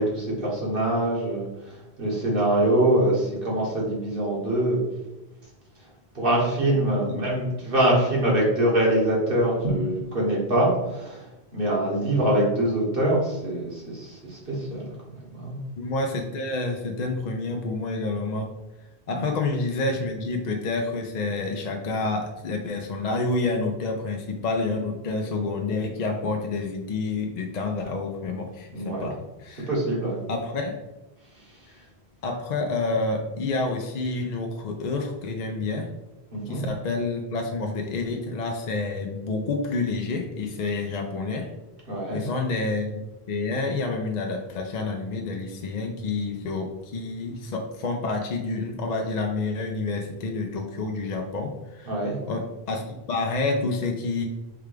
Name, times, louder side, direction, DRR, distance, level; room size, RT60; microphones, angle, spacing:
voice 1, 0.0-4.8 6.2-11.2 11.5-14.9 15.4-15.6 19.1-19.2 28.7-29.1 29.7-30.2 36.3-36.6 41.9-42.2 51.9-52.2, right 1 dB, 55° right, -4 dB, 1.6 m, -24 dB
voice 2, 15.8-18.5 19.1-29.7 30.3-30.8 32.2-35.9 36.5-41.5 42.1-43.0 43.3-51.9 52.2-54.3, left 3 dB, 55° left, 3 dB, 0.5 m, -28 dB
4.8 x 2.3 x 4.9 m, 1.0 s
omnidirectional pair, 1.1 m